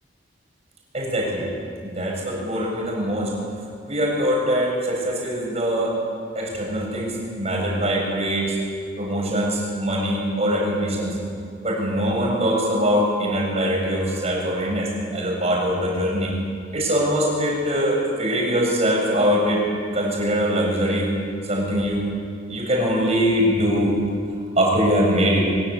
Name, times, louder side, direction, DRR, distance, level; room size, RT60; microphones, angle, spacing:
voice 1, 0.9-1.5 1.8-3.4 3.8-6.0 6.3-8.6 9.0-11.2 11.6-16.3 16.7-19.7 19.9-21.1 21.5-22.0 22.5-23.9 24.6-25.5, equal, 35° right, -1 dB, 7.8 m, -22 dB
24.5 x 23.0 x 8.7 m, 2.3 s
head